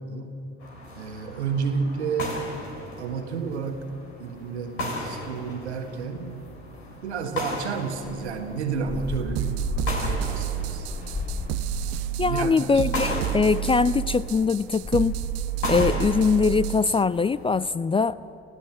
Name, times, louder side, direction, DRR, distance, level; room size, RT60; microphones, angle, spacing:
sound 1, 0.6-17.6, left 1 dB, 75° left, 3.5 m, -36 dB
voice 1, 1.0-2.3 3.0-3.8 4.2-6.4 7.0-10.9 12.2-12.8, right 5 dB, 80° right, 6 dB, 1.6 m, -31 dB
sound 2, 8.1-16.4, left 3 dB, 45° left, 4.9 m, -35 dB
sound 3, 9.4-17.1, right 21 dB, 50° right, 0.4 m, -30 dB
voice 2, 12.2-15.2 15.7-18.2, left 5 dB, 15° left, 19 dB, 0.4 m, -22 dB
29.0 x 15.5 x 7.4 m, 3.0 s
figure-of-eight pair, 50°, 33 cm